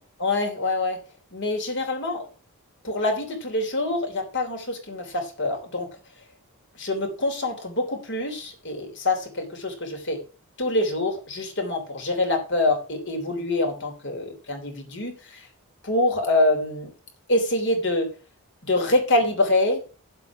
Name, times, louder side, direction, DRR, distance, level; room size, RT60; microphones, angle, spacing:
voice 1, 0.2-1.0 1.3-2.3 2.8-5.9 6.8-10.2 10.6-15.2 15.8-16.9 17.3-18.1 18.6-19.8, left 2 dB, 55° left, 4 dB, 3.1 m, -25 dB
9.8 x 7.7 x 5.9 m, 0.36 s
head